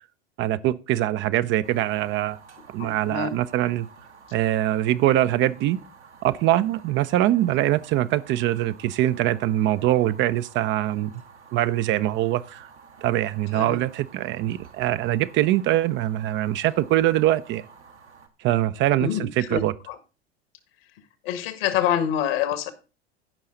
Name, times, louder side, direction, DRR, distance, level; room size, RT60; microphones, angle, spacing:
voice 1, 0.4-2.4 2.7-3.9 4.3-5.8 6.2-11.1 11.5-12.7 13.0-17.7 18.4-19.7, right 14 dB, 35° right, 0.5 m, -23 dB
Fire, 1.6-18.3, right 5 dB, 85° right, 1.7 m, -50 dB
voice 2, 2.8-3.4 13.5-13.8 19.0-19.9 21.2-22.7, left 9 dB, 60° left, 1.7 m, -26 dB
15.0 x 5.6 x 3.8 m
figure-of-eight pair, 85°, 33 cm